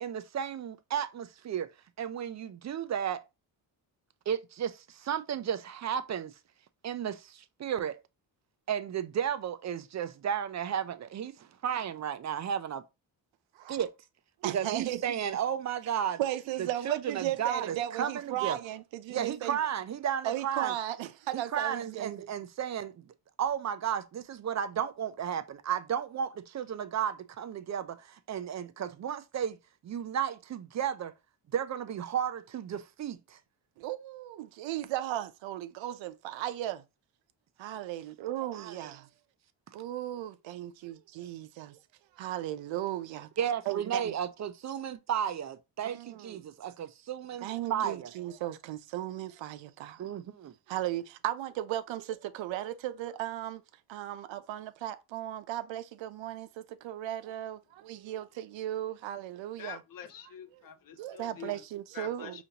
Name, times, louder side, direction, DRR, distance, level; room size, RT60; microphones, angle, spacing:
voice 1, 0.0-1.7 2.0-3.2 4.3-6.3 6.8-8.0 8.7-12.8 13.7-13.9 14.4-16.2 16.6-18.6 19.1-20.7 21.5-23.0 23.4-29.6 29.8-31.1 31.5-33.4 38.5-38.9 43.4-48.1 50.0-50.5, right 9 dB, 40° right, 0.4 m, -33 dB
voice 2, 14.4-15.0 16.2-19.6 20.2-22.1 33.8-36.8 37.6-39.1 39.7-41.8 42.1-43.3 43.7-44.1 45.8-46.4 47.4-50.0 50.7-53.6 53.9-59.8 61.0-62.4, right 13 dB, 80° right, 0.6 m, -36 dB
voice 3, 59.6-61.6 61.9-62.4, left 9 dB, 50° left, 0.5 m, -45 dB
5.1 x 2.6 x 2.8 m
cardioid pair, 120°, 45 cm